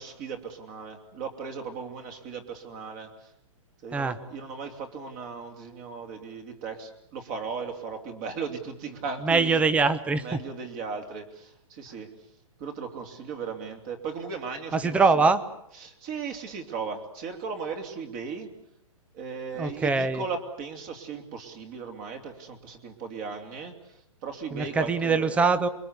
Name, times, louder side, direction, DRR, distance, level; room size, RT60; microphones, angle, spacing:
voice 1, 0.0-3.3 3.8-9.6 10.2-12.1 12.6-15.3 15.8-18.5 19.1-25.4, right 5 dB, 30° right, 4 dB, 3.0 m, -37 dB
voice 2, 9.2-10.2 14.7-15.4 19.6-20.2 24.5-25.7, right 4 dB, 5° right, 15 dB, 1.0 m, -23 dB
28.0 x 23.0 x 8.2 m, 0.75 s
hypercardioid pair, 160°, 18 cm